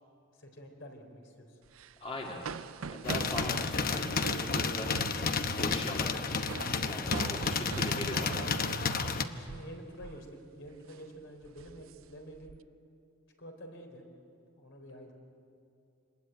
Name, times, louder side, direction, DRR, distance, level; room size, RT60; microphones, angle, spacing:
voice 1, 0.4-1.6 9.2-12.6 13.4-14.0 14.6-15.1, equal, 65° left, 3 dB, 4.0 m, -48 dB
sound 1, 1.7-9.7 10.0-10.3 10.7-11.0 11.4-12.6, right 5 dB, 80° right, 0.5 m, -43 dB
voice 2, 2.0-2.4 2.9-4.9 5.6-6.1 6.8-8.6, left 1 dB, 30° left, -1 dB, 2.3 m, -40 dB
sound 2, 3.0-9.2, left 4 dB, 45° left, 1.0 m, -31 dB
26.0 x 21.0 x 9.2 m, 2.6 s
head